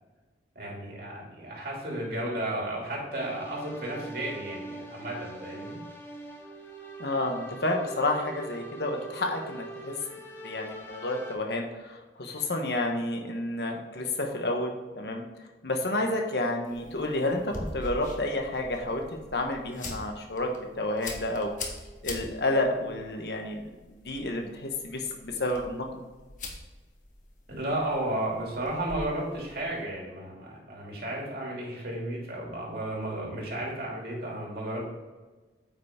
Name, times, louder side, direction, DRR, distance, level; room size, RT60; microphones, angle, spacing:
voice 1, 0.5-5.8 27.5-34.8, right 1 dB, 55° right, -3 dB, 2.7 m, -33 dB
sound 1, 3.1-11.3, right 1 dB, 15° left, 1.1 m, -43 dB
voice 2, 7.0-10.0 10.4-19.0 19.3-21.5 22.0-23.6 23.9-26.0, left 2 dB, 65° left, 3 dB, 1.2 m, -30 dB
sound 2, 16.6-29.9, left 2 dB, 45° left, 1.3 m, -43 dB
8.8 x 5.6 x 3.7 m, 1.3 s
head